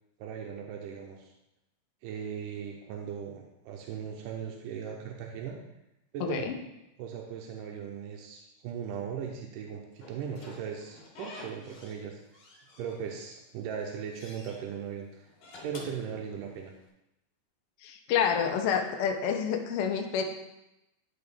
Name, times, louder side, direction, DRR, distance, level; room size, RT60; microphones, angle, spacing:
voice 1, 0.2-1.3 2.0-5.6 6.1-6.5 7.0-12.2 12.8-15.3 15.6-16.7, right 7 dB, 90° right, 1 dB, 2.3 m, -38 dB
voice 2, 6.2-6.5 17.8-20.2, left 7 dB, 85° left, 3 dB, 1.3 m, -28 dB
Slam / Squeak, 10.0-12.0 12.3-13.3 13.7-14.6 15.2-16.8, left 2 dB, 50° left, 1.8 m, -49 dB
11.0 x 4.7 x 3.5 m, 0.89 s
omnidirectional pair, 3.7 m